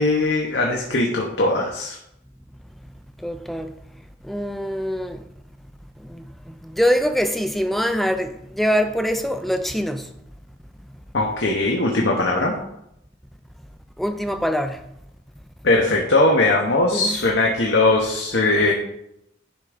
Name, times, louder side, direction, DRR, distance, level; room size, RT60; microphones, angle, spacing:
voice 1, 0.0-2.0 11.1-12.5 15.6-18.7, left 2 dB, 70° left, 1.0 m, -20 dB
voice 2, 3.2-3.7 4.2-5.2 6.0-10.1 14.0-14.8 16.9-17.2, equal, ahead, 0.4 m, -24 dB
10.5 x 3.7 x 5.0 m
head